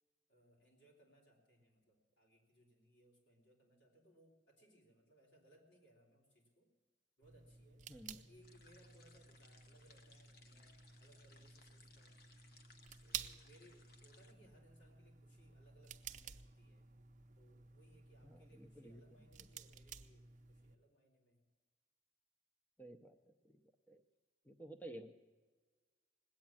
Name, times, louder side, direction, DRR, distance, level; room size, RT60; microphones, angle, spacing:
voice 1, 0.3-6.7 7.2-7.9 8.1-12.2 13.0-16.8 17.3-21.5, right 1 dB, 85° left, -1 dB, 3.9 m, -68 dB
sound 1, 7.2-20.8, right 8 dB, 45° right, 0.6 m, -54 dB
voice 2, 7.9-8.2 18.2-19.0 22.8-23.2 23.4-23.6 23.9-24.0 24.4-25.1, right 1 dB, 10° left, 8 dB, 0.6 m, -53 dB
sound 2, 8.4-14.3, left 4 dB, 55° left, 1.0 m, -66 dB
19.5 x 8.6 x 7.3 m, 1.4 s
head